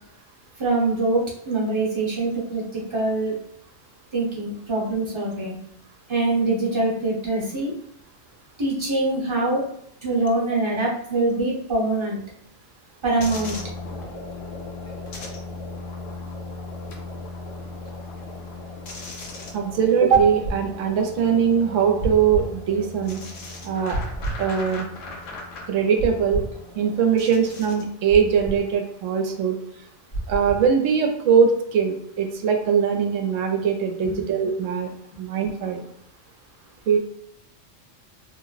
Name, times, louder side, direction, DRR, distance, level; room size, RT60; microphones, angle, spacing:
voice 1, 0.6-3.4 4.1-5.6 6.1-7.7 8.6-9.7 10.0-12.2 13.0-13.6 34.0-34.2, right 2 dB, 25° right, -4 dB, 0.8 m, -24 dB
sound 1, 13.2-27.9, left 2 dB, 75° left, 1.1 m, -37 dB
voice 2, 19.5-23.2 23.6-24.0 24.4-24.9 25.7-26.4 26.8-29.6 30.3-34.9 35.2-35.8 36.9-37.0, right 7 dB, 75° right, 4 dB, 0.9 m, -21 dB
sound 2, 20.1-20.6 22.0-22.5 23.9-24.4 26.0-26.5 28.1-28.6 30.1-30.6, right 2 dB, 45° left, 1.3 m, -29 dB
3.0 x 2.0 x 3.9 m, 0.73 s
omnidirectional pair, 1.3 m